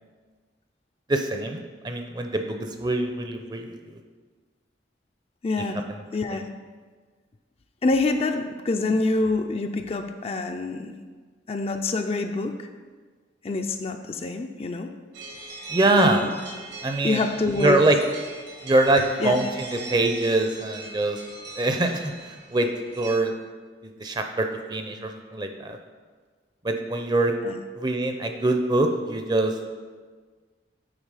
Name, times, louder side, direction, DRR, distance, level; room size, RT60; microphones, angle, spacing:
voice 1, 1.1-1.6 1.8-3.8 5.9-6.1 6.3-6.4 15.7-16.2 16.8-17.2 17.6-18.0 18.6-21.2 21.6-22.7 23.0-23.3 23.8-25.8 26.6-27.3 27.8-29.7, right 2 dB, 25° right, 5 dB, 0.5 m, -24 dB
voice 2, 5.4-5.8 6.1-6.4 7.8-11.0 11.5-12.7 13.4-15.0 15.9-16.3 17.0-17.8 19.2-19.4 27.4-27.5, left 3 dB, 30° left, 6 dB, 0.4 m, -26 dB
sound 1, 15.1-23.2, right 3 dB, 85° right, 2.1 m, -40 dB
8.9 x 4.4 x 4.8 m, 1.5 s
head